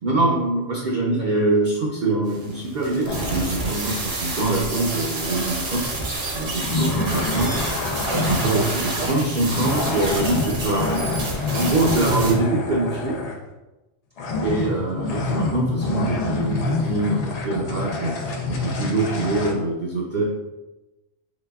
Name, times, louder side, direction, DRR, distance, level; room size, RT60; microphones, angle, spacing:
voice 1, 0.0-5.8 6.3-7.6 8.0-11.0 11.5-13.2 14.4-20.2, right 2 dB, 50° right, -4 dB, 0.6 m, -24 dB
sound 1, 2.3-12.3, right 2 dB, 70° right, 1.2 m, -29 dB
sound 2, 3.1-3.5 6.6-13.5 14.2-19.5, left 3 dB, 75° left, 0.3 m, -27 dB
3.9 x 3.2 x 2.3 m, 1.0 s
omnidirectional pair, 1.3 m